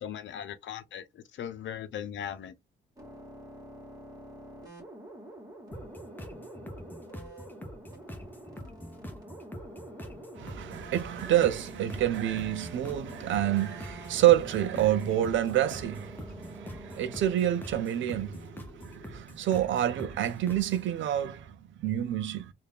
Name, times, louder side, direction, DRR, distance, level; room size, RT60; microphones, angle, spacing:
voice 1, 0.0-2.5, left 9 dB, 70° left, 0.8 m, -38 dB
sound 1, 3.0-17.3, right 1 dB, 20° right, 2.1 m, -47 dB
sound 2, 5.7-20.9, equal, 10° left, 0.9 m, -45 dB
voice 2, 10.4-22.5, right 12 dB, 75° right, 0.7 m, -28 dB
3.3 x 2.6 x 3.6 m
cardioid pair, 90°, 20 cm